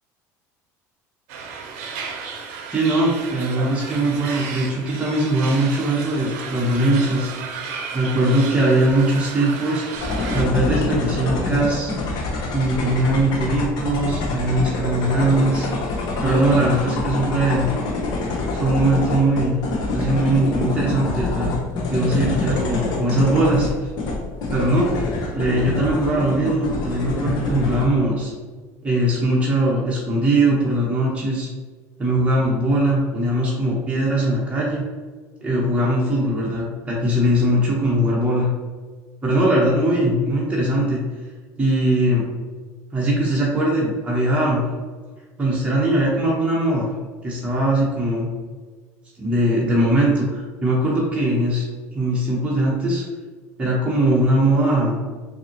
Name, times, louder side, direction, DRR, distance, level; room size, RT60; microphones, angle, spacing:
sound 1, 1.3-10.4, right 5 dB, 75° right, 0.6 m, -33 dB
voice 1, 2.7-7.3 7.9-9.8 10.3-11.9 12.5-15.7 16.2-17.7 18.5-19.6 19.9-21.5 21.9-23.9 24.5-24.9 25.3-28.3 28.8-31.5 32.0-34.8 35.4-38.5 39.2-41.0 41.6-42.2 42.9-44.7 45.4-46.9 47.2-48.3 49.2-51.7 51.9-53.0 53.6-55.0, right 1 dB, 15° right, -5 dB, 1.1 m, -20 dB
sound 2, 9.9-27.8, left 3 dB, 55° left, 1.0 m, -26 dB
4.0 x 2.8 x 2.9 m, 1.4 s
supercardioid pair, 85°, 8 cm